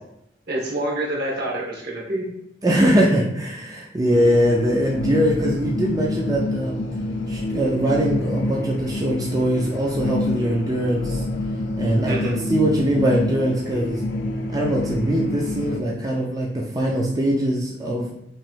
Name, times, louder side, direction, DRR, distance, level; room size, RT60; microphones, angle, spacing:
voice 1, 0.5-2.3 12.0-12.3, right 1 dB, 60° right, -2 dB, 1.2 m, -27 dB
voice 2, 2.6-6.8 7.3-11.2 11.8-14.0 14.5-18.1, equal, 20° right, -3 dB, 0.5 m, -22 dB
sound 1, 4.1-15.8, left 1 dB, 90° left, 0.5 m, -27 dB
3.1 x 2.6 x 4.4 m, 0.79 s
head